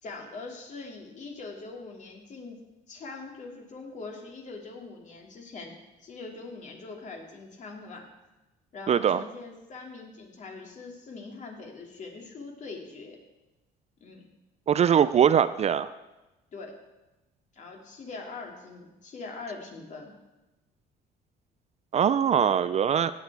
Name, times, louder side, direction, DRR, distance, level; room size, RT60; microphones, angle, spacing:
voice 1, 0.0-2.6 2.9-5.7 6.0-8.1 8.7-13.2 14.0-14.2 16.5-16.8 17.5-20.1, left 3 dB, 45° left, 1 dB, 2.6 m, -42 dB
voice 2, 8.9-9.2 14.7-15.9 21.9-23.1, right 8 dB, 40° right, 14 dB, 0.4 m, -22 dB
16.0 x 8.4 x 4.8 m, 1.0 s
cardioid pair, 110°, 17 cm